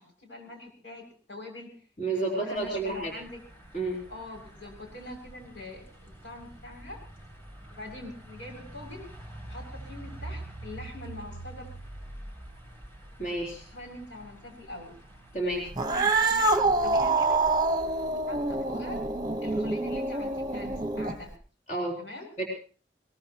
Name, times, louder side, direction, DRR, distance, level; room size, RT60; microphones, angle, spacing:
voice 1, 0.0-1.7 2.2-3.4 4.1-7.0 7.7-9.1 9.5-11.7 13.7-15.0 15.8-17.4 17.8-19.0 19.4-21.3 22.0-22.3, left 2 dB, 80° left, 1 dB, 6.9 m, -43 dB
voice 2, 2.0-3.1 3.7-4.0 13.2-13.6 15.3-15.7 21.7-22.0 22.4-22.5, right 2 dB, 40° left, -2 dB, 3.8 m, -30 dB
sound 1, 2.6-18.1, right 1 dB, 15° left, 6.8 m, -46 dB
Cat, 15.7-21.3, right 3 dB, 20° right, 1.2 m, -26 dB
22.0 x 21.0 x 3.0 m, 0.39 s
head